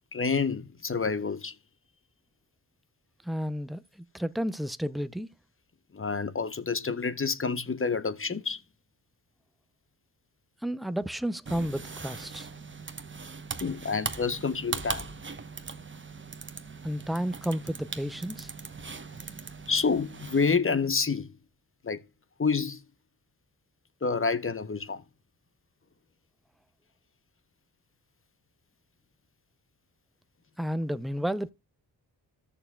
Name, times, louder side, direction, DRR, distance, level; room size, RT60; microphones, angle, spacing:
voice 1, 0.1-1.5 5.9-8.6 13.6-15.1 19.7-21.3 21.8-22.0 22.4-22.8 24.0-25.0, left 5 dB, 30° left, 0.9 m, -28 dB
voice 2, 3.2-5.3 10.6-12.5 16.8-18.5 30.6-31.5, equal, ahead, 0.6 m, -32 dB
sound 1, 11.5-20.6, right 4 dB, 25° right, 1.0 m, -40 dB
14.0 x 6.8 x 2.3 m
cardioid pair, 45°, 43 cm